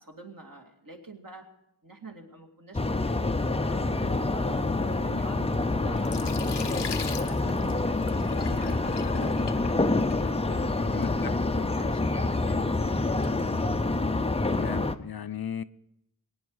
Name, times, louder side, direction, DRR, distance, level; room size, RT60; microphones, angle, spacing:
voice 1, 0.0-1.5 1.8-6.7 7.2-11.4 11.8-13.2, right 4 dB, 55° right, 2.4 m, -46 dB
sound 1, 2.7-14.9, left 2 dB, 15° left, 0.5 m, -27 dB
Sink (filling or washing), 5.3-14.1, left 6 dB, 85° left, 0.9 m, -43 dB
voice 2, 10.9-11.7 14.5-15.6, left 8 dB, 65° left, 0.6 m, -37 dB
22.5 x 9.5 x 4.8 m
wide cardioid pair, 85°, 41 cm